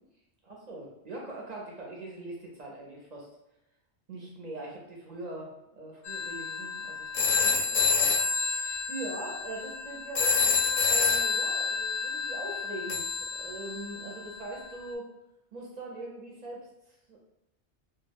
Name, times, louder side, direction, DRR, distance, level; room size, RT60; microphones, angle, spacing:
voice 1, 0.4-3.3 4.1-5.5 5.8-15.1 15.5-17.2, right 2 dB, 50° right, -3 dB, 0.6 m, -42 dB
sound 1, 6.1-14.1, left 4 dB, 55° left, 0.6 m, -28 dB
2.2 x 2.1 x 3.3 m, 0.92 s
omnidirectional pair, 1.1 m